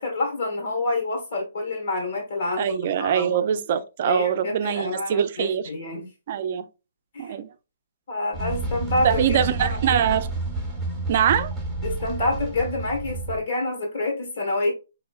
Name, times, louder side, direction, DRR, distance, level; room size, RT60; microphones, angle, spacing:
voice 1, 0.0-3.3 4.0-6.1 7.1-7.3 8.1-10.0 11.8-14.7, left 2 dB, 60° left, 1.3 m, -28 dB
voice 2, 2.6-5.6 6.3-6.7 7.2-7.5 9.0-10.3 11.1-11.5, right 9 dB, 45° right, 0.4 m, -23 dB
sound 1, 8.3-13.4, right 3 dB, ahead, 1.0 m, -30 dB
3.6 x 3.0 x 2.3 m
hypercardioid pair, 155°, 0 cm